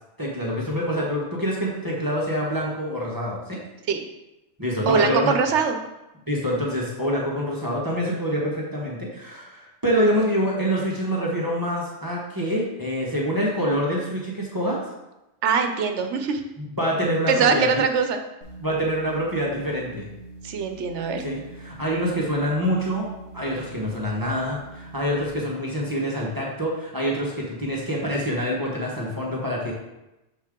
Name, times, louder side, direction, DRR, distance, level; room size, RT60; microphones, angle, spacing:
voice 1, 0.2-3.6 4.6-5.4 6.3-14.8 16.7-17.8 18.6-20.1 21.2-23.1 23.3-29.7, equal, 20° right, -4 dB, 1.2 m, -26 dB
voice 2, 4.9-5.8 15.4-16.4 17.3-18.2 20.4-21.2, right 5 dB, 85° right, 6 dB, 1.0 m, -22 dB
sound 1, 18.4-25.3, right 2 dB, 75° left, 1.8 m, -43 dB
6.7 x 4.5 x 3.7 m, 0.96 s
omnidirectional pair, 1.2 m